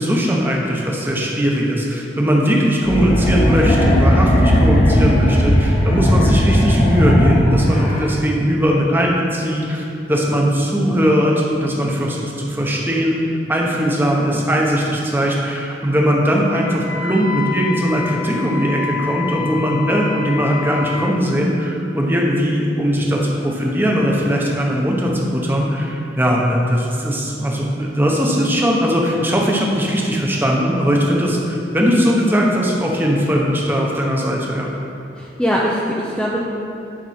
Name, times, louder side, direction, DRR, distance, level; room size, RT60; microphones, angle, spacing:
voice 1, 0.0-13.2 13.5-34.7, equal, 10° right, -2 dB, 1.0 m, -19 dB
sound 1, 2.8-8.1, equal, 35° left, 1.0 m, -16 dB
Wind instrument woodwind instrument, 16.5-21.0, left 7 dB, 75° left, 1.9 m, -28 dB
voice 2, 35.2-36.4, equal, 5° left, -6 dB, 0.6 m, -21 dB
10.5 x 5.2 x 4.3 m, 2.7 s
head